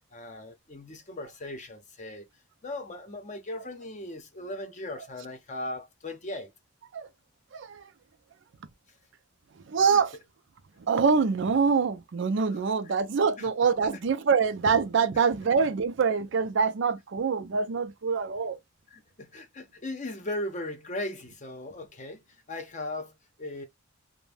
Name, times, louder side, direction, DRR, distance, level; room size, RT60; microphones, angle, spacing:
voice 1, 0.1-2.3 2.6-6.5 9.9-10.0 12.5-12.6 13.4-13.5 18.9-22.2 22.5-23.7, left 1 dB, 35° left, 0.7 m, -38 dB
voice 2, 7.5-7.9 9.7-10.1 10.9-18.6, right 5 dB, 60° right, 0.4 m, -25 dB
2.5 x 2.1 x 3.3 m
head